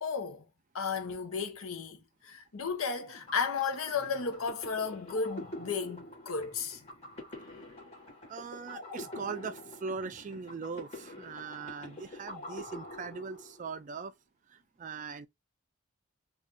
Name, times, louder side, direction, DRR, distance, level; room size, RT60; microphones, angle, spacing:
voice 1, 0.0-0.5 0.7-6.8, left 5 dB, 80° left, 0.8 m, -34 dB
sound 1, 3.0-13.8, left 1 dB, 30° left, 1.3 m, -46 dB
voice 2, 8.3-14.1 14.5-15.3, right 5 dB, 35° right, 0.3 m, -40 dB
2.6 x 2.4 x 3.3 m
head